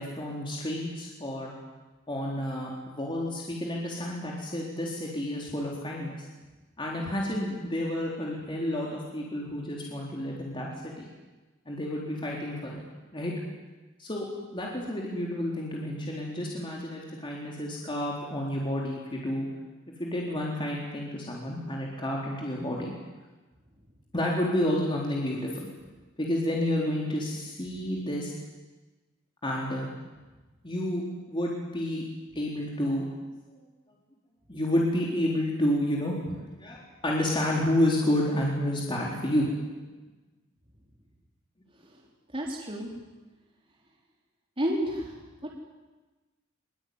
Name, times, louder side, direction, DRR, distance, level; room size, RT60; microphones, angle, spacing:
voice 1, 0.0-1.5 2.1-6.2 6.8-11.1 11.7-12.8 13.1-13.3 14.0-14.3 14.5-19.5 20.0-22.9 24.1-25.7 26.2-28.3 29.4-29.9 30.6-32.0 32.3-33.1 33.5-33.6 34.5-39.7, left 1 dB, 25° left, -3 dB, 4.1 m, -30 dB
voice 2, 42.3-42.9 44.6-45.5, equal, 25° right, -2 dB, 3.9 m, -32 dB
24.0 x 23.5 x 9.7 m, 1.2 s
head